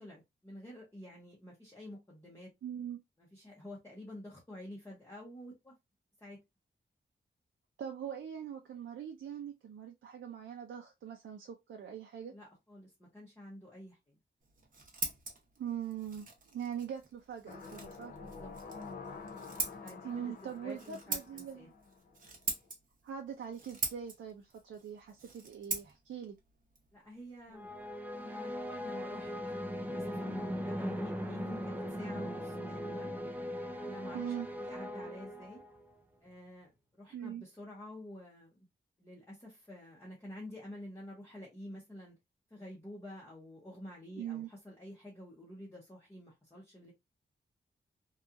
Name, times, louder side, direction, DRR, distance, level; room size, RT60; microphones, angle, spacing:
voice 1, 0.0-2.5 3.2-5.7 6.2-6.4 12.3-14.2 18.2-18.5 19.8-20.3 20.6-21.7 26.9-27.7 28.2-29.3 29.7-33.1 33.8-35.6 36.2-38.6 39.0-42.2 42.5-46.9, left 1 dB, 15° left, 0.7 m, -49 dB
voice 2, 2.6-3.0 7.8-12.3 15.6-18.1 20.0-21.7 23.0-26.4 34.1-34.5 37.1-37.4 44.2-44.5, right 9 dB, 80° right, 0.5 m, -42 dB
Scissors, 14.4-28.0, right 4 dB, 45° right, 0.7 m, -43 dB
sound 1, 17.5-22.3 22.7-22.8, left 4 dB, 50° left, 0.5 m, -48 dB
sound 2, 27.5-36.0, equal, 10° right, 0.4 m, -39 dB
2.8 x 2.3 x 2.4 m
wide cardioid pair, 175°, 20 cm